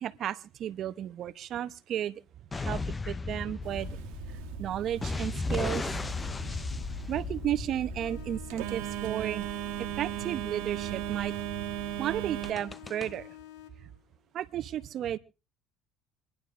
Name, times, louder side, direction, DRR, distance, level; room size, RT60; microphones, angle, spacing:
voice 1, 0.0-2.2 2.5-3.9 4.6-5.9 7.1-9.5 10.0-11.3 12.0-13.3 14.3-15.2, right 11 dB, 50° right, 0.8 m, -33 dB
sound 1, 2.5-8.9 12.4-13.1, left 3 dB, 20° left, 0.6 m, -35 dB
Telephone, 3.6-12.5, right 13 dB, 85° right, 1.4 m, -38 dB
sound 2, 8.0-14.0, left 14 dB, 75° left, 1.4 m, -49 dB
26.0 x 11.0 x 2.6 m
cardioid pair, 110°, 0 cm